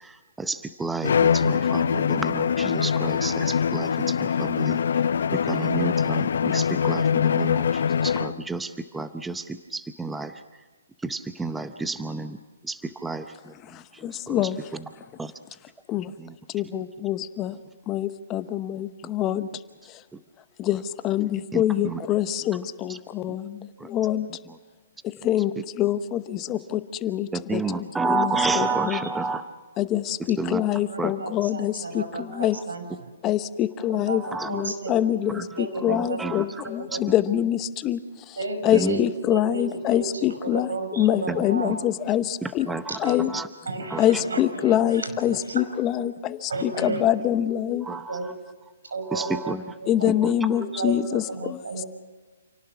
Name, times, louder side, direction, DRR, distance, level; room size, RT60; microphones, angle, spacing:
voice 1, 0.4-4.8 5.5-7.7 8.0-9.4 9.7-10.3 11.0-12.4 12.7-13.2 14.3-14.4 15.2-15.3 21.5-22.0 23.8-23.9 27.3-29.4 30.4-30.6 31.0-31.1 34.3-34.5 35.9-36.4 38.7-39.0 41.3-41.4 42.7-43.4 43.9-44.0 47.9-48.2 49.1-49.6, right 3 dB, 5° right, 10 dB, 0.7 m, -30 dB
Bowed string instrument, 1.0-8.4, left 7 dB, 65° left, 0.7 m, -23 dB
voice 2, 13.5-15.1 15.9-16.1 16.5-17.6 17.9-20.0 20.6-24.3 25.0-29.1 29.8-32.6 33.2-38.4 38.6-42.7 43.0-43.3 44.0-47.9 49.9-51.8, left 11 dB, 20° left, 12 dB, 0.9 m, -25 dB
voice 3, 30.9-33.1 34.1-34.9 35.6-36.2 36.9-37.0 38.4-39.0 39.3-40.1 40.4-41.7 43.0-43.2 43.7-44.8 45.3-45.7 46.5-47.0 48.1-48.3 48.9-49.5 50.0-50.1 50.7-51.9, right 2 dB, 85° right, 8 dB, 5.5 m, -33 dB
28.5 x 18.0 x 5.9 m, 1.4 s
hypercardioid pair, 145°, 0 cm